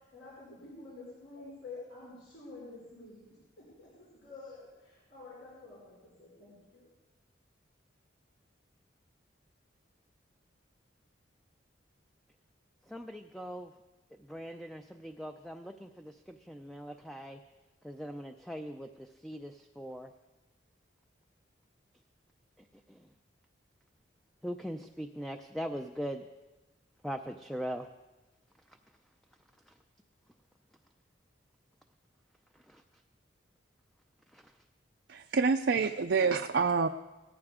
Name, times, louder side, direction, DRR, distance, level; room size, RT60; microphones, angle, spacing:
voice 1, 0.1-3.2 3.6-6.9, left 3 dB, 70° left, -7 dB, 5.2 m, -49 dB
voice 2, 12.9-13.7 14.3-17.4 17.8-20.1 22.9-23.0 24.4-26.2 27.0-27.9 32.7-32.8 34.3-34.4, equal, ahead, 5 dB, 0.4 m, -41 dB
voice 3, 35.1-36.9, right 5 dB, 60° right, 5 dB, 0.5 m, -27 dB
18.5 x 14.5 x 3.7 m, 1.1 s
head